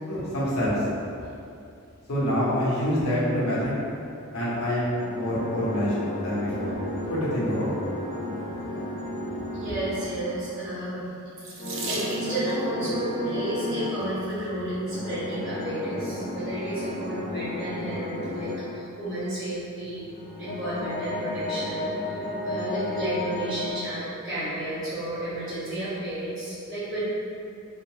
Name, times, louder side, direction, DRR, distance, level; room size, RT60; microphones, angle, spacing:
voice 1, 0.0-0.8 2.1-3.8 4.3-6.7 7.1-7.7, equal, 85° left, -7 dB, 0.8 m, -26 dB
sound 1, 4.6-10.7 11.6-14.1 14.9-18.7 20.0-23.7, left 1 dB, 40° left, 0.4 m, -33 dB
voice 2, 9.5-11.1 11.4-20.1 20.4-27.0, right 1 dB, 15° right, -13 dB, 0.6 m, -32 dB
Water tap faucet / Sink (filling or washing), 11.3-12.6 13.6-14.0 14.7-14.8 15.2-15.3, right 3 dB, 60° right, 0.4 m, -36 dB
2.7 x 2.0 x 3.0 m, 2.6 s
head